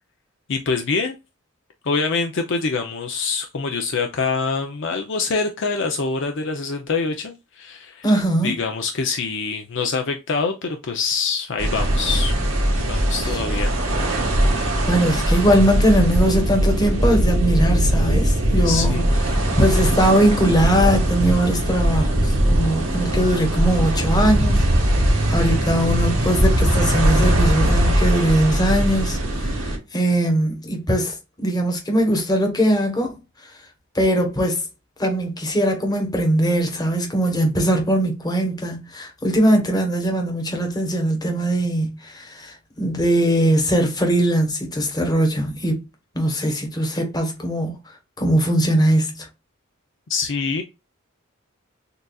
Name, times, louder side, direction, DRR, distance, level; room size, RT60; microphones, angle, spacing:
voice 1, 0.5-1.1 1.8-8.1 8.4-12.3 12.6-14.0 18.6-19.4 50.1-50.6, left 4 dB, 60° left, 0.6 m, -25 dB
voice 2, 8.0-8.5 14.9-19.0 19.6-24.6 25.3-33.1 33.9-34.6 35.0-45.8 46.1-47.7 48.2-49.3, right 1 dB, 20° left, 1.1 m, -20 dB
sound 1, 11.6-29.8, right 1 dB, 90° right, 1.8 m, -20 dB
6.6 x 2.5 x 2.3 m
head